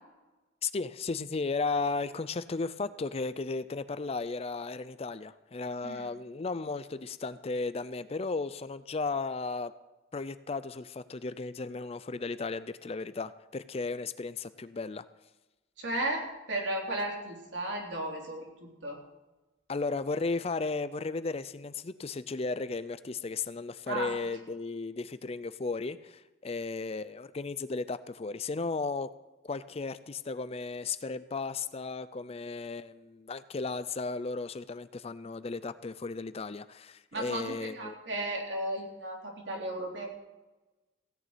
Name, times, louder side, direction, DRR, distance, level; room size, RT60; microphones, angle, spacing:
voice 1, 0.6-9.7 10.1-15.1 19.7-29.1 29.4-38.0, left 3 dB, 30° left, 14 dB, 0.4 m, -35 dB
voice 2, 15.8-18.5 18.8-19.0 23.9-24.1 37.1-40.1, right 1 dB, 65° right, 0 dB, 3.5 m, -34 dB
16.5 x 6.7 x 9.0 m, 1.1 s
head